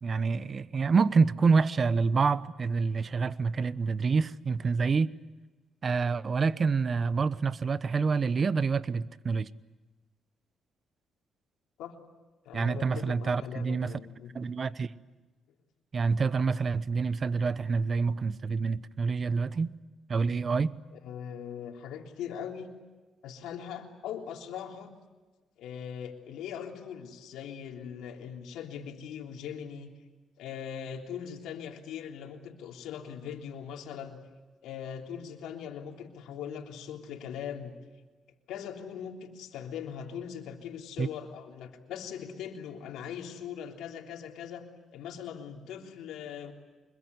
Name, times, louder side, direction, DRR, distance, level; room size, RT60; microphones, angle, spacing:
voice 1, 0.0-5.1 5.8-9.5 12.5-13.9 14.3-14.9 15.9-19.7 20.1-20.8 41.0-41.1, right 4 dB, 40° right, 1.0 m, -27 dB
voice 2, 12.4-14.3 20.9-22.7 23.2-24.9 25.6-29.9 30.4-34.2 34.6-37.7 38.5-44.7 44.9-46.5, left 8 dB, 85° left, 3.4 m, -40 dB
25.0 x 22.0 x 9.7 m
cardioid pair, 90°, 0 cm